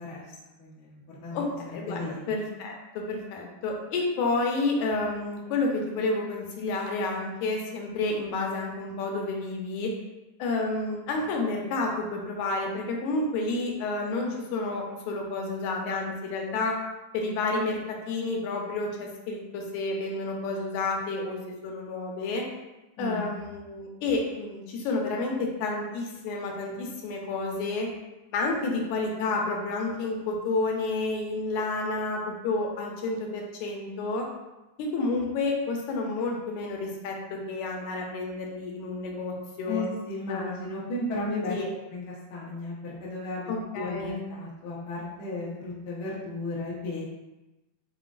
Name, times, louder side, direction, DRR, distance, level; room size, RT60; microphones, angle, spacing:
voice 1, 0.0-1.4 1.7-2.3 23.0-23.3 39.7-41.5 41.9-47.0, left 2 dB, 60° left, -6 dB, 1.0 m, -35 dB
voice 2, 1.3-9.9 10.4-16.8 17.1-21.4 21.6-22.5 23.0-27.9 28.3-34.3 34.8-39.8 40.3-40.7 41.5-41.7 43.5-44.2, left 3 dB, 80° left, 0 dB, 2.0 m, -30 dB
5.1 x 3.8 x 2.5 m, 1.0 s
omnidirectional pair, 3.4 m